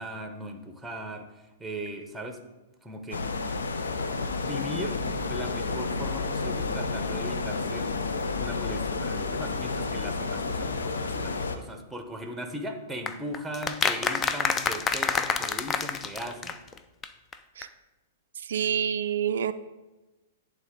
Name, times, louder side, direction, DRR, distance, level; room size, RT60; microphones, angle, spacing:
voice 1, 0.0-2.4 2.8-3.2 4.4-7.9 8.3-16.6, equal, 5° right, 5 dB, 0.9 m, -38 dB
sound 1, 3.1-11.6, left 3 dB, 80° left, 0.6 m, -30 dB
sound 2, 13.1-16.8 17.0-17.1 17.3-17.4 17.6-17.7, left 5 dB, 20° left, 0.4 m, -28 dB
voice 2, 18.5-19.5, right 8 dB, 70° right, 10 dB, 0.3 m, -27 dB
10.5 x 3.7 x 3.7 m, 1.1 s
hypercardioid pair, 115°, 0 cm